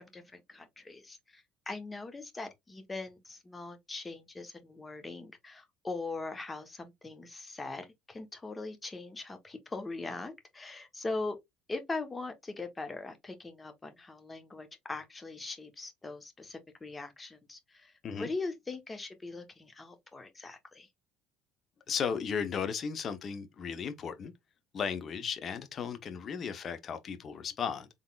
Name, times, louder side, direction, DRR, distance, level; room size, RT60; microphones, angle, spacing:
voice 1, 0.0-11.4 11.7-20.9, left 3 dB, 15° left, 1.1 m, -41 dB
voice 2, 21.9-24.3 24.7-27.9, left 6 dB, 40° left, 0.8 m, -35 dB
3.9 x 3.5 x 2.3 m
supercardioid pair, 110°, 0 cm